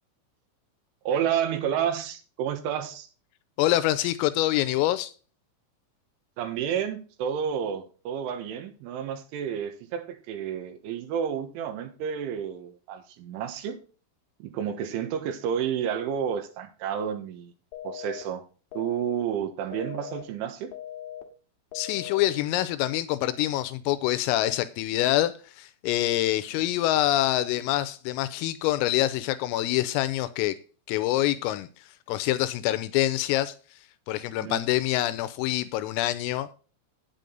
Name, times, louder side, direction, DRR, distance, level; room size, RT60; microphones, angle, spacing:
voice 1, 1.1-3.1 6.4-13.8 14.4-17.5 17.9-18.4 18.8-20.7 34.4-34.6, right 8 dB, 75° right, 3.7 m, -30 dB
voice 2, 3.6-5.1 21.7-30.6 30.9-31.7 32.1-33.5 34.1-36.5, left 14 dB, 85° left, 3.3 m, -26 dB
sound 1, 17.7-18.2 18.7-19.2 19.7-20.2 20.7-21.2 21.7-22.2, left 11 dB, 65° left, 2.9 m, -39 dB
9.3 x 9.0 x 3.9 m
omnidirectional pair, 6.0 m